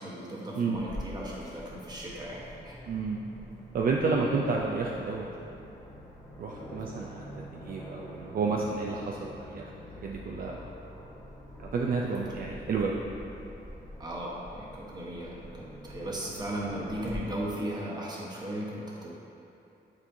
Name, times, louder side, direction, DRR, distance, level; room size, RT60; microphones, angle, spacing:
voice 1, 0.0-2.9 4.0-4.5 14.0-19.1, right 1 dB, 20° right, -4 dB, 1.1 m, -37 dB
Aircraft, 0.7-17.1, left 1 dB, 15° left, 1.1 m, -46 dB
voice 2, 2.9-3.2 3.7-5.3 6.4-9.7 10.0-10.6 11.7-13.0, right 4 dB, 50° right, -1 dB, 0.4 m, -30 dB
8.6 x 4.3 x 2.7 m, 2.8 s
cardioid pair, 120°, 18 cm